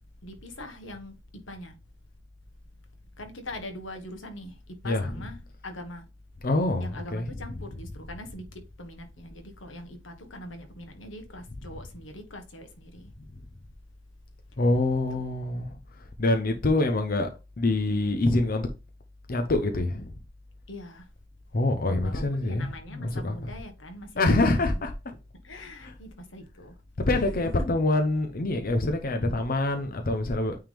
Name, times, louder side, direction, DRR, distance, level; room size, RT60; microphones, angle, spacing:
voice 1, 0.2-1.8 3.2-5.4 5.6-6.0 6.8-13.1 15.1-15.2 20.7-21.1 22.0-24.4 25.4-26.7 27.1-27.2 27.6-27.7, left 1 dB, 90° left, 1.5 m, -42 dB
voice 2, 4.8-5.3 6.4-7.8 11.7-11.8 14.6-17.3 17.6-18.7 19.3-20.2 21.5-23.5 24.2-24.9 25.5-25.9 27.1-30.6, left 2 dB, 50° left, 0.7 m, -26 dB
8.9 x 3.5 x 3.4 m
head